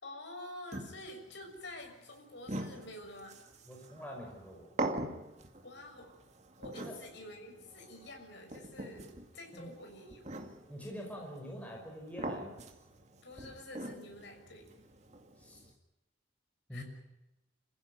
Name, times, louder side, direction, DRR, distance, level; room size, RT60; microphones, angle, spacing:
voice 1, 0.0-3.4 5.6-6.1 6.6-10.2 13.2-14.7 16.7-16.8, left 1 dB, 65° left, 3 dB, 6.3 m, -48 dB
sound 1, 0.7-15.7, right 1 dB, 35° right, 2.2 m, -44 dB
voice 2, 3.7-4.7 6.8-6.9 9.5-9.7 10.7-12.6 15.4-15.6 16.7-16.8, equal, 5° left, 0 dB, 5.4 m, -45 dB
27.5 x 15.5 x 9.5 m, 0.97 s
head